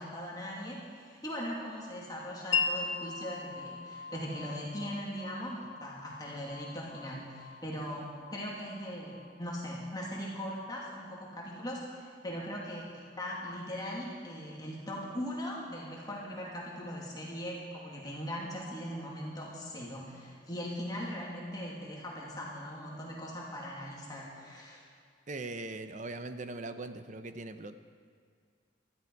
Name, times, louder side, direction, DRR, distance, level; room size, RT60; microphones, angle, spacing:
voice 1, 0.0-24.8, equal, 20° left, -3 dB, 2.4 m, -40 dB
Wind chime, 2.5-10.2, left 5 dB, 85° left, 1.5 m, -39 dB
voice 2, 25.3-27.8, right 2 dB, 40° right, 10 dB, 0.8 m, -40 dB
19.0 x 13.5 x 4.7 m, 2.1 s
head